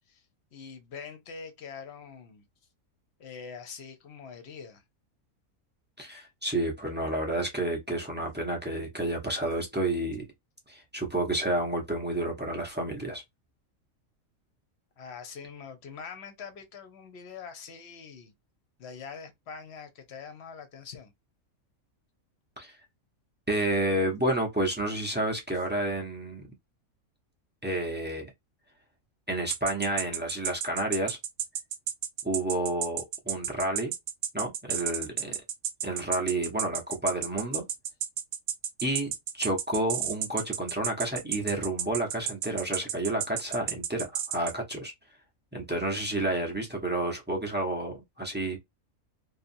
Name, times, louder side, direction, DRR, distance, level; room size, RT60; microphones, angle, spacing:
voice 1, 0.5-2.4 3.2-4.8 15.0-18.3 18.8-21.1 35.1-35.4, left 6 dB, 55° left, 0.9 m, -44 dB
voice 2, 6.0-10.2 10.7-13.2 22.6-22.8 23.5-26.5 27.6-28.3 29.3-31.2 32.2-33.9 34.3-35.3 35.8-37.7 38.8-44.9 45.5-48.6, right 1 dB, 15° right, 0.3 m, -30 dB
sound 1, 29.5-44.5, right 9 dB, 85° right, 1.1 m, -32 dB
2.7 x 2.3 x 2.5 m
omnidirectional pair, 1.5 m